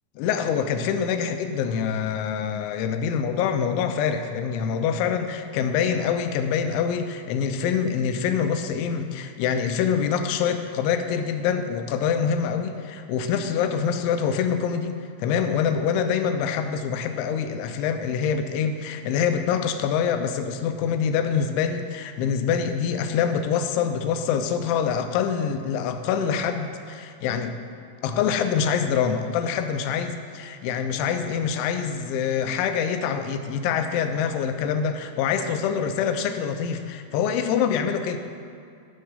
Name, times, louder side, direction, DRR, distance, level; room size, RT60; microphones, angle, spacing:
voice 1, 0.2-27.6 28.0-38.2, left 7 dB, 85° left, 7 dB, 2.9 m, -25 dB
13.5 x 6.6 x 5.5 m, 2.3 s
omnidirectional pair, 5.5 m